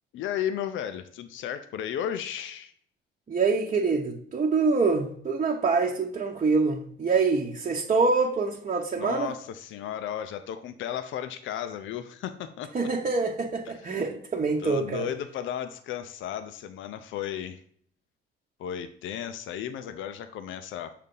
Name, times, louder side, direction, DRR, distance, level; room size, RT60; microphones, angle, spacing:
voice 1, 0.1-2.7 9.0-12.7 13.8-14.0 14.6-17.6 18.6-20.9, left 9 dB, 75° left, 9 dB, 0.5 m, -34 dB
voice 2, 3.3-9.3 12.7-15.0, right 4 dB, 35° right, 0 dB, 0.8 m, -25 dB
6.6 x 2.7 x 5.3 m, 0.62 s
cardioid pair, 90°, 20 cm